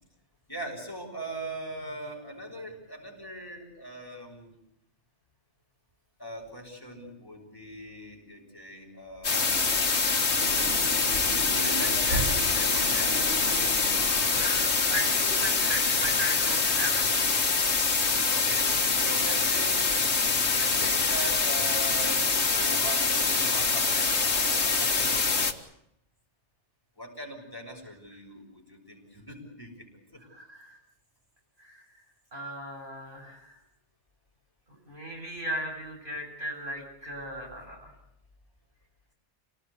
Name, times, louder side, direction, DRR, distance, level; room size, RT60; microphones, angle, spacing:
voice 1, 0.5-4.6 6.2-9.9 11.3-14.7 18.3-19.8 20.6-25.5 27.0-29.9 30.1-30.2, right 1 dB, 20° left, 0 dB, 6.9 m, -41 dB
sound 1, 9.2-25.5, left 4 dB, 70° left, 2.0 m, -25 dB
sound 2, 10.4-15.0, right 1 dB, 85° right, 3.8 m, -36 dB
voice 2, 14.3-17.5 30.3-30.8 31.6-31.8 32.3-33.6 34.9-37.9, equal, 45° right, 0 dB, 8.0 m, -37 dB
27.5 x 19.0 x 8.4 m, 0.81 s
omnidirectional pair, 1.2 m